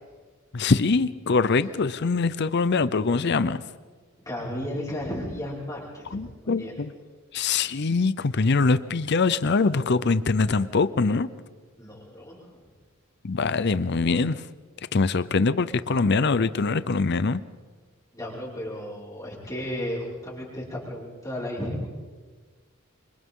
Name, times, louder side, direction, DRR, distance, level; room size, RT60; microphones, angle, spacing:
voice 1, 0.5-3.6 6.1-6.9 7.3-11.3 13.2-14.4 14.9-17.4, left 4 dB, 55° left, 15 dB, 0.6 m, -23 dB
voice 2, 4.2-6.8 11.8-12.6 18.1-21.9, left 1 dB, 15° left, -7 dB, 5.6 m, -34 dB
27.5 x 25.5 x 3.8 m, 1.4 s
head